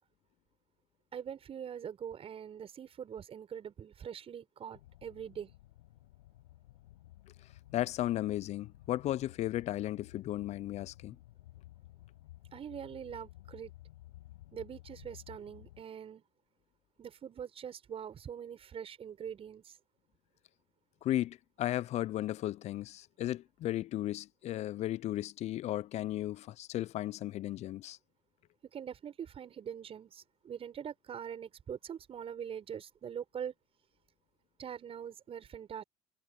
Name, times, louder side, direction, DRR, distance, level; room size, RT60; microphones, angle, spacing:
voice 1, 1.1-5.5 12.5-13.7 14.5-16.2 17.0-19.8 28.7-33.5 34.6-35.8, right 8 dB, 45° right, 6.7 m, -43 dB
sound 1, 4.7-15.8, left 16 dB, 80° left, 5.3 m, -55 dB
voice 2, 7.7-11.2 21.0-28.0, left 14 dB, 55° left, 0.7 m, -35 dB
hypercardioid pair, 65°, 14 cm